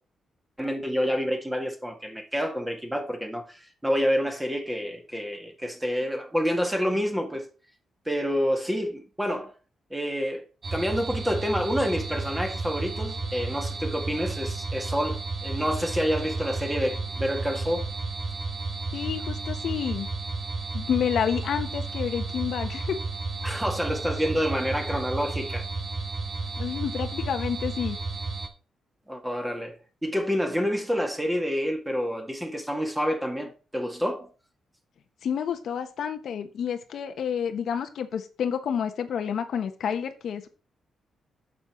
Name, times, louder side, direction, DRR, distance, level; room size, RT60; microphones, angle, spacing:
voice 1, 0.6-7.5 8.1-9.5 9.9-10.4 10.7-17.9 23.4-25.7 29.1-34.3, equal, 5° right, 1.8 m, -28 dB
sound 1, 10.6-28.5, right 3 dB, 35° right, 1.3 m, -32 dB
voice 2, 18.9-20.1 20.7-23.0 26.6-28.0 35.2-40.5, left 8 dB, 70° left, 1.1 m, -29 dB
8.6 x 6.8 x 4.4 m
cardioid pair, 125°, 0 cm